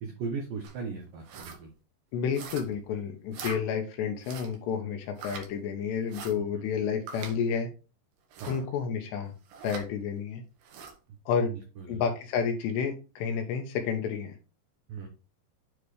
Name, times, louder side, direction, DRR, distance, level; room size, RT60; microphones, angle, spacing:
voice 1, 0.0-1.7 6.5-6.6 8.4-8.7 11.4-12.0 14.9-15.1, right 5 dB, 80° right, 3 dB, 2.0 m, -37 dB
sound 1, 0.6-0.8 1.2-1.6 2.3-2.8 3.3-3.6 4.2-4.6 5.2-5.5 6.1-6.3 7.1-7.4 8.3-8.6 9.5-9.9 10.6-11.0, right 5 dB, 65° right, 3.0 m, -42 dB
voice 2, 2.1-7.7 8.4-9.3 9.6-10.4 11.3-11.5 11.9-14.4, left 6 dB, 75° left, 5 dB, 2.9 m, -30 dB
9.7 x 4.1 x 3.2 m, 0.32 s
omnidirectional pair, 5.6 m